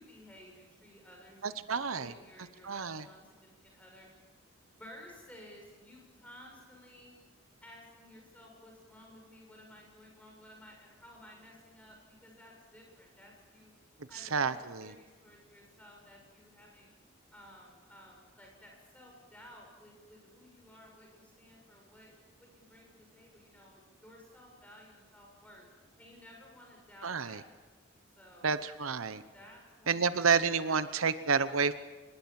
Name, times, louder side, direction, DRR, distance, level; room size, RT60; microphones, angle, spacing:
voice 1, 0.0-4.1 4.6-7.1 7.6-13.7 14.1-14.5 14.8-16.9 17.3-25.7 26.0-27.5 28.2-28.7 29.3-31.2, left 1 dB, 5° left, 0 dB, 7.6 m, -55 dB
voice 2, 1.4-2.1 2.6-3.0 14.1-14.9 27.0-27.4 28.4-29.2 29.9-31.7, right 5 dB, 85° right, 13 dB, 1.0 m, -30 dB
26.0 x 21.5 x 7.6 m, 1.3 s
head